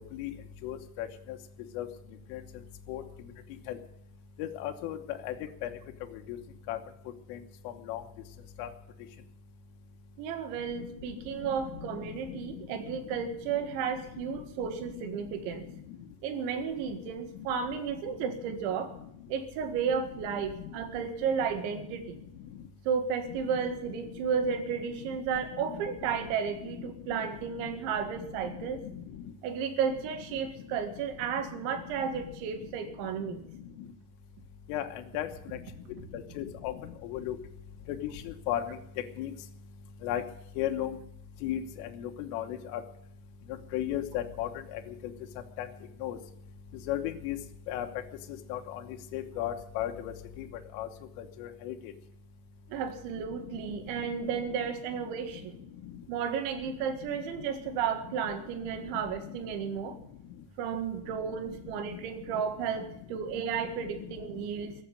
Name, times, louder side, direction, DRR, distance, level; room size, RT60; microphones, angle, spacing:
voice 1, 0.6-1.1 1.8-1.9 2.3-2.4 2.9-3.0 3.7-3.8 4.4-5.4 5.6-5.7 6.7-6.8 7.9-8.0 8.6-8.7 25.7-25.8 34.7-34.9 35.2-35.3 36.4-36.7 37.1-37.4 38.5-38.6 39.2-39.3 40.0-40.2 40.6-41.0 41.4-42.8 43.7-44.5 45.6-45.7 46.0-46.2 46.9-47.4 47.7-47.9 48.5-48.8 49.1-49.9 50.7-50.9 51.4-51.8, left 12 dB, 80° left, 5 dB, 3.7 m, -33 dB
voice 2, 10.2-15.7 16.2-18.9 19.3-22.2 22.9-28.8 29.4-33.4 52.7-55.6 56.1-60.0 60.6-64.7, right 7 dB, 70° right, 6 dB, 3.9 m, -33 dB
15.0 x 9.4 x 9.8 m, 0.71 s
omnidirectional pair, 5.9 m